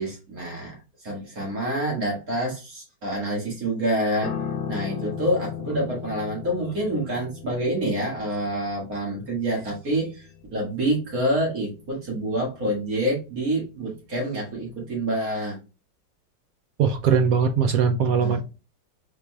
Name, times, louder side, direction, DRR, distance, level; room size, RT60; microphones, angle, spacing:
voice 1, 0.0-4.3 4.7-15.6 18.2-18.4, right 1 dB, 55° right, 2.2 m, -27 dB
Piano, 4.2-13.6 13.9-14.1, left 8 dB, 60° left, 1.0 m, -37 dB
voice 2, 16.8-18.4, right 6 dB, 75° right, 0.8 m, -20 dB
4.5 x 4.1 x 2.2 m
omnidirectional pair, 1.9 m